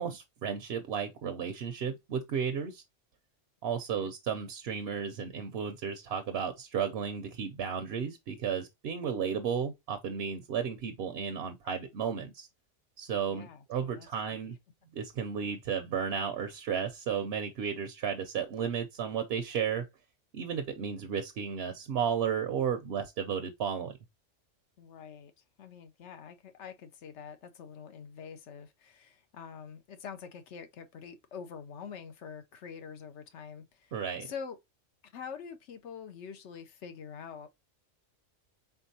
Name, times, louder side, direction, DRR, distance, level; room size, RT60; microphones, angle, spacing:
voice 1, 0.0-2.8 3.6-12.5 13.0-14.6 14.9-19.9 20.3-23.9 33.9-34.3, right 7 dB, 65° right, 0.8 m, -33 dB
voice 2, 13.3-14.5 24.8-25.3 25.6-34.6 35.0-37.5, left 6 dB, 70° left, 0.9 m, -45 dB
4.4 x 3.8 x 2.7 m
omnidirectional pair, 1.3 m